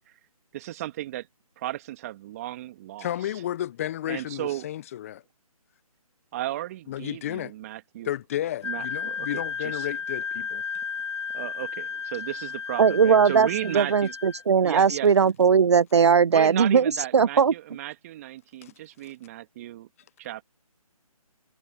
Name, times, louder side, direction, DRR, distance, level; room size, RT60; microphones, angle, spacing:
voice 1, 0.5-1.3 1.6-3.1 4.1-4.7 6.3-8.1 8.6-9.9 11.3-14.1 14.6-15.2 16.3-19.9 20.2-20.4, right 14 dB, 25° right, 2.3 m, -35 dB
voice 2, 3.0-5.2 6.9-7.5 8.0-10.6 18.6-18.7, left 12 dB, 25° left, 1.1 m, -32 dB
Wind instrument woodwind instrument, 8.6-14.4, left 6 dB, 50° left, 5.0 m, -33 dB
voice 3, 12.8-13.5 13.7-17.5, right 6 dB, 45° right, 0.5 m, -19 dB
figure-of-eight pair, 150°, 20 cm